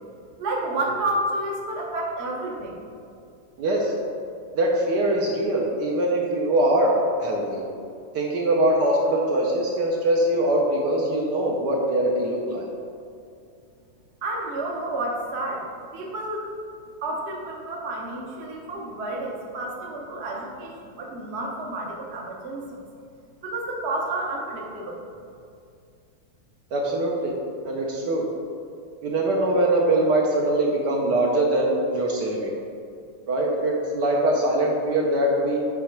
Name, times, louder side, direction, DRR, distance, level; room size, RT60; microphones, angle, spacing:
voice 1, 0.4-2.8 14.2-16.5 17.0-22.6 23.4-25.0, right 2 dB, 50° right, -1 dB, 0.8 m, -30 dB
voice 2, 3.6-3.9 4.5-7.6 8.1-12.7 26.7-27.3 27.6-28.2 29.0-32.5 33.3-35.6, right 1 dB, 65° right, -2 dB, 1.2 m, -22 dB
8.4 x 3.7 x 4.5 m, 2.4 s
omnidirectional pair, 2.3 m